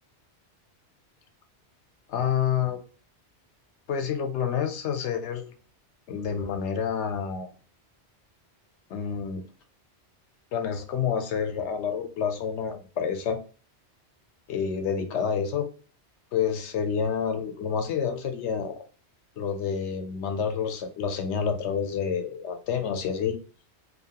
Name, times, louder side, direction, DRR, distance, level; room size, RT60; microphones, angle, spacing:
voice 1, 2.1-2.8 3.9-5.5 6.1-7.5 8.9-9.4 10.5-13.4 14.5-15.7 16.3-18.8 19.4-23.4, left 7 dB, 90° left, 7 dB, 0.9 m, -28 dB
2.8 x 2.3 x 2.8 m, 0.38 s
omnidirectional pair, 1.2 m